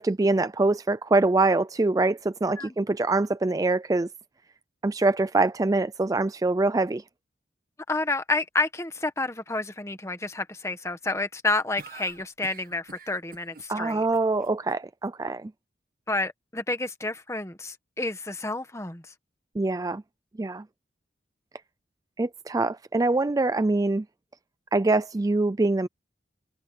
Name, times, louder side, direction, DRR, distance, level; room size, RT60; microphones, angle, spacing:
voice 1, 0.0-4.1 4.8-7.0 13.7-15.5 19.6-20.0 20.4-20.6 22.2-24.0 24.7-25.9, right 2 dB, 20° right, 0.4 m, -24 dB
voice 2, 7.9-14.0 16.1-19.0, left 2 dB, 15° left, 1.4 m, -29 dB
sound 1, 11.8-14.7, right 4 dB, 55° right, 1.6 m, -46 dB
open air
head